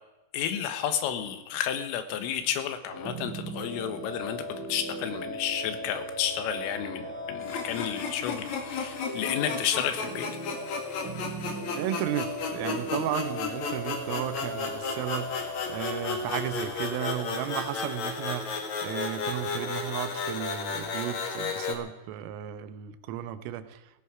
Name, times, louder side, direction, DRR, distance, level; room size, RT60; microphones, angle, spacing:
voice 1, 0.3-10.3, left 9 dB, 80° left, 10 dB, 3.9 m, -31 dB
sound 1, 2.9-17.1, equal, 5° right, 5.6 m, -38 dB
sound 2, 7.4-21.8, left 5 dB, 55° left, 2.2 m, -34 dB
voice 2, 11.7-23.8, right 12 dB, 85° right, 12 dB, 3.6 m, -34 dB
17.5 x 14.5 x 5.0 m, 1.0 s
omnidirectional pair, 5.8 m